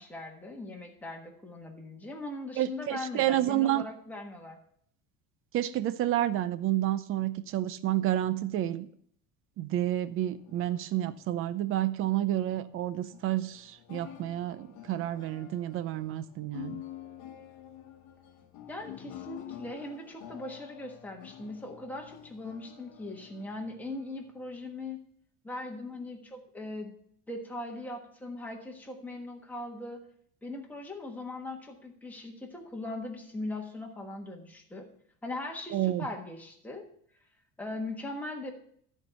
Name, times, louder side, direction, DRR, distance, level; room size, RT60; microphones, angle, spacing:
voice 1, 0.0-4.6 18.7-25.0 25.4-26.9 27.3-30.0 30.4-34.9 35.2-36.8 37.6-38.5, left 2 dB, 5° left, 0 dB, 1.4 m, -40 dB
voice 2, 2.6-3.8 5.5-8.9 9.6-16.8 35.7-36.1, right 13 dB, 40° right, 15 dB, 0.6 m, -30 dB
sound 1, 10.3-25.0, left 12 dB, 60° left, 1.1 m, -49 dB
13.5 x 4.5 x 6.8 m, 0.64 s
cardioid pair, 175°, 33 cm